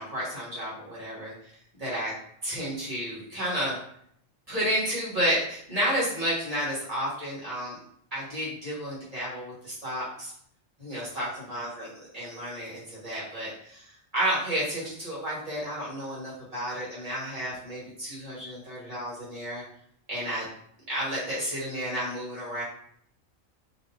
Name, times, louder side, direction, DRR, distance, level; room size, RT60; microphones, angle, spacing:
voice 1, 0.0-1.5 1.8-2.1 2.4-3.8 4.5-7.8 8.1-10.3 10.8-19.6 20.1-20.5 20.9-22.6, equal, 30° right, -8 dB, 1.9 m, -31 dB
4.1 x 3.3 x 2.8 m, 0.67 s
omnidirectional pair, 1.3 m